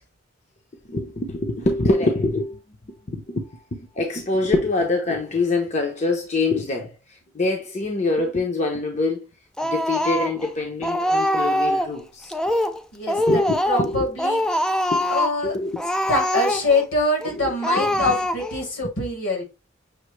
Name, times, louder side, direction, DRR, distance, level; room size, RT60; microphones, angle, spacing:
voice 1, 0.9-2.6 2.9-7.0 7.3-9.3 9.6-12.3 13.3-14.1 14.9-15.0 15.4-15.8 16.3-16.4 17.4-18.2, left 2 dB, 35° left, 0.7 m, -25 dB
Speech, 9.6-10.5 10.8-11.9 12.3-12.8 13.1-13.9 14.2-15.4 15.8-16.8 17.2-17.3 17.6-18.6, equal, 5° left, 0.3 m, -23 dB
voice 2, 12.9-13.4 13.7-14.4 15.1-15.6 16.1-19.4, left 2 dB, 80° left, 2.7 m, -24 dB
6.4 x 2.7 x 3.1 m
head